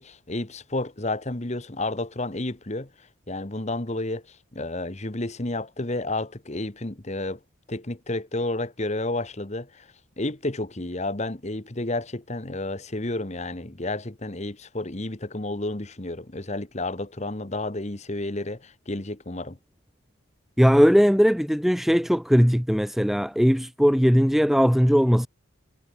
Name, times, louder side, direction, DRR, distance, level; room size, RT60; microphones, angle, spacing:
voice 1, 0.0-7.4 7.7-9.9 10.2-19.6, left 2 dB, 30° left, 1.3 m, -31 dB
voice 2, 20.6-25.3, equal, ahead, 1.3 m, -19 dB
head